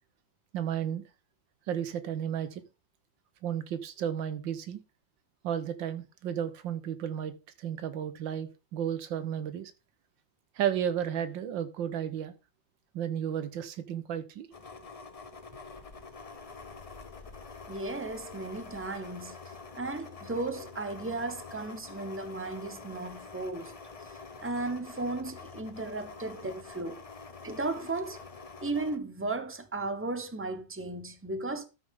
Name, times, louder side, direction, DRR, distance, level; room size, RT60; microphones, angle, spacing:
voice 1, 0.5-1.0 1.7-2.6 3.4-4.8 5.4-9.7 10.6-12.3 12.9-14.5 26.4-26.5, right 9 dB, 80° right, 1.7 m, -33 dB
sound 1, 14.5-29.0, left 4 dB, 40° left, 0.5 m, -46 dB
voice 2, 17.7-19.4 19.7-23.7 24.4-27.0 27.4-28.2 28.6-31.6, right 2 dB, 15° right, 0.5 m, -35 dB
12.5 x 6.5 x 3.6 m
omnidirectional pair, 2.0 m